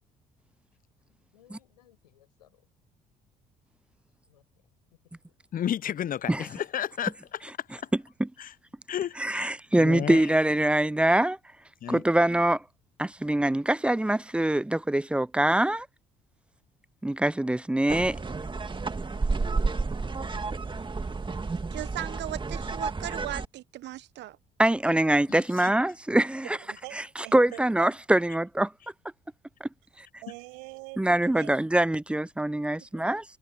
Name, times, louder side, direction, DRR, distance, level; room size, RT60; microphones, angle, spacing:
voice 1, 1.3-2.7 4.1-4.4 4.9-5.3, left 13 dB, 90° left, 7.5 m, -62 dB
voice 2, 5.5-7.4 8.4-8.5 8.9-10.3 11.8-12.0 25.6-25.7, left 10 dB, 45° left, 0.7 m, -32 dB
voice 3, 9.2-11.4 11.9-12.6 13.0-15.9 17.0-18.2 24.6-26.5 27.0-28.7 31.0-33.2, right 1 dB, 5° right, 0.4 m, -24 dB
sound 1, 17.9-23.5, right 4 dB, 25° right, 2.2 m, -31 dB
voice 4, 21.7-24.4, right 14 dB, 60° right, 1.0 m, -37 dB
voice 5, 26.4-27.9 30.2-31.6 32.8-33.1, right 34 dB, 80° right, 5.9 m, -44 dB
hypercardioid pair, 55°, 20 cm